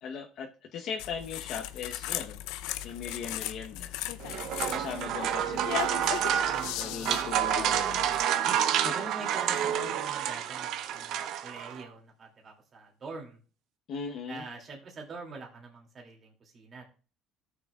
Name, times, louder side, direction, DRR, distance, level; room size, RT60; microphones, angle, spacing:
voice 1, 0.0-2.4 2.8-3.9 4.6-6.2 6.8-8.1 8.4-8.5 8.8-9.0 13.9-14.4, left 6 dB, 65° left, 2 dB, 1.0 m, -39 dB
sound 1, 1.0-8.2, left 14 dB, 85° left, 0.5 m, -37 dB
voice 2, 4.2-4.6 6.5-7.2 8.4-8.6 8.9-13.4 14.3-16.8, right 3 dB, 40° right, 1 dB, 2.6 m, -45 dB
sound 2, 4.2-11.8, right 10 dB, 70° right, 0.8 m, -29 dB
14.0 x 6.7 x 2.4 m, 0.37 s
supercardioid pair, 95°, 0 cm